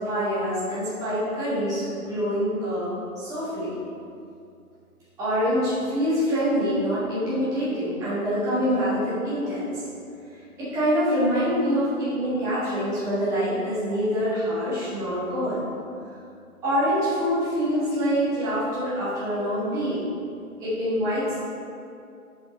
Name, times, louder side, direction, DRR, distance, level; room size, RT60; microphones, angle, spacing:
voice 1, 0.0-3.7 5.2-9.8 10.6-15.7 16.6-20.0 20.6-21.4, equal, 5° right, -12 dB, 1.4 m, -25 dB
7.0 x 5.1 x 4.0 m, 2.5 s
figure-of-eight pair, 145°, 44 cm